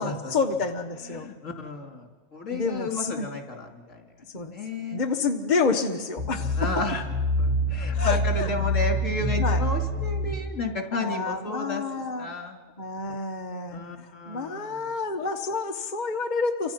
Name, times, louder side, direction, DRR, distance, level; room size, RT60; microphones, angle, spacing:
voice 1, 0.0-1.3 2.5-3.3 4.3-4.6 4.9-6.7 7.9-8.5 9.4-9.6 10.9-12.3 12.8-16.7, left 4 dB, 35° left, 4 dB, 1.4 m, -29 dB
voice 2, 1.1-4.0 4.5-5.0 6.6-7.0 7.4-11.8 12.2-12.6 13.7-14.9, left 3 dB, 70° left, 3 dB, 2.9 m, -33 dB
sound 1, 6.2-10.4, equal, 75° right, 8.3 m, -26 dB
28.5 x 25.5 x 5.8 m, 1.4 s
omnidirectional pair, 1.4 m